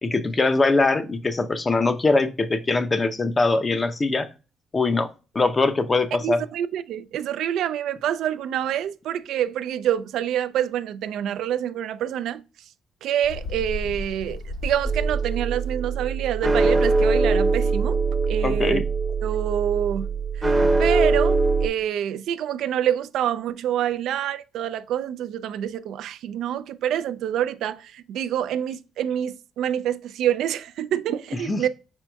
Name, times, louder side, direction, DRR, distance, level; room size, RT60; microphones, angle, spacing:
voice 1, 0.0-4.3 4.7-5.1 5.3-6.4 18.4-18.8 31.5-31.6, left 3 dB, 30° left, 0.6 m, -22 dB
voice 2, 6.2-12.4 13.0-18.0 18.3-18.8 19.2-20.1 20.4-20.5 20.8-31.7, right 10 dB, 80° right, 0.3 m, -27 dB
Bird, 13.2-15.7, left 1 dB, 50° left, 0.9 m, -33 dB
sound 1, 14.8-21.7, right 3 dB, 15° right, 0.7 m, -22 dB
5.0 x 4.5 x 2.2 m
cardioid pair, 90°, 0 cm